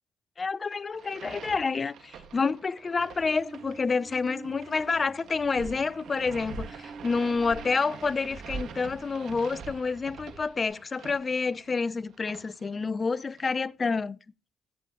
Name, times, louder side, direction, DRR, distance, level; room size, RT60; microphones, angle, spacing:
voice 1, 0.4-14.2, left 4 dB, 40° left, 0.5 m, -28 dB
sound 1, 0.9-13.5, right 7 dB, 70° right, 1.8 m, -47 dB
sound 2, 2.9-9.4, right 4 dB, 45° right, 3.5 m, -49 dB
sound 3, 5.3-10.7, right 3 dB, 90° right, 6.8 m, -44 dB
16.0 x 8.4 x 3.0 m
supercardioid pair, 60°, 0 cm